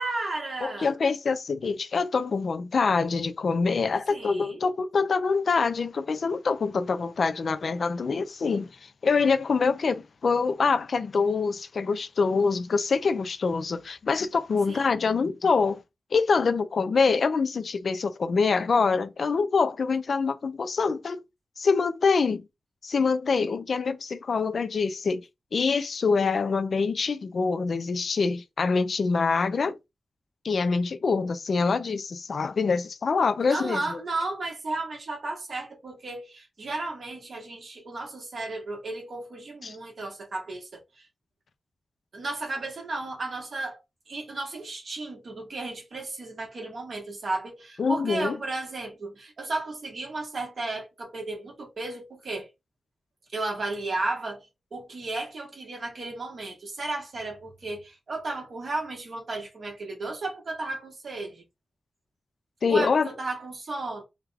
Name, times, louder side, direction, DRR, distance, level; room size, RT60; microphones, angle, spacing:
voice 1, 0.0-0.9 4.1-4.6 14.7-14.9 33.5-41.0 42.1-43.8 44.1-52.5 53.3-54.4 54.7-61.4 62.7-64.0, right 2 dB, 55° right, 1.4 m, -34 dB
voice 2, 0.6-15.8 16.1-21.2 21.6-22.4 22.8-25.2 25.5-29.8 30.4-34.0 39.6-39.8 47.8-48.4 62.6-63.1, left 4 dB, 60° left, 0.4 m, -25 dB
3.4 x 2.2 x 3.3 m
wide cardioid pair, 170°, 0 cm